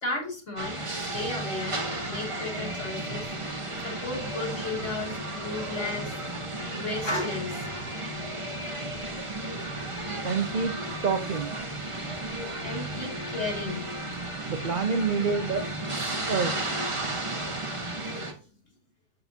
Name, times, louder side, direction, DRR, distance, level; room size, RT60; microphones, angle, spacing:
voice 1, 0.0-3.3 3.8-6.2 6.5-7.7 9.0-9.2 9.6-9.7 12.6-13.9 17.1-17.2 18.1-18.3, left 2 dB, 45° left, -1 dB, 3.7 m, -34 dB
sound 1, 0.6-18.3, right 1 dB, 20° right, 1.3 m, -33 dB
voice 2, 10.2-10.8 11.0-11.5 14.5-15.6 16.3-16.7, right 5 dB, 70° right, 7 dB, 0.4 m, -27 dB
7.9 x 6.7 x 2.8 m, 0.40 s
omnidirectional pair, 1.7 m